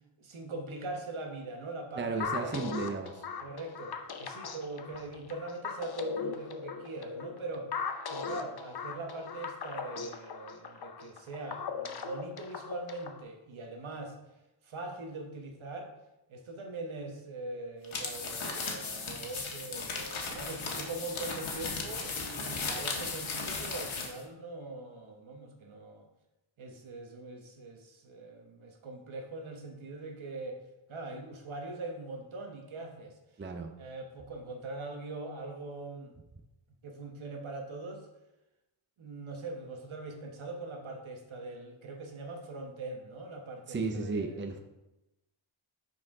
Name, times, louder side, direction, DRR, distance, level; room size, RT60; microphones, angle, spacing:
voice 1, 0.2-2.6 3.4-7.8 8.1-14.2 14.6-15.9 16.3-26.1 26.6-30.6 30.9-33.2 33.8-36.2 36.8-38.1 39.0-44.6, right 2 dB, 75° right, 3 dB, 1.3 m, -42 dB
voice 2, 2.0-3.2 33.4-33.7 43.7-44.6, right 4 dB, 25° right, 5 dB, 0.6 m, -34 dB
sound 1, 2.2-13.2, left 6 dB, 50° left, 0.7 m, -39 dB
sound 2, 17.8-24.2, left 4 dB, 75° left, 1.3 m, -36 dB
6.1 x 4.7 x 4.8 m, 0.96 s
wide cardioid pair, 145°, 48 cm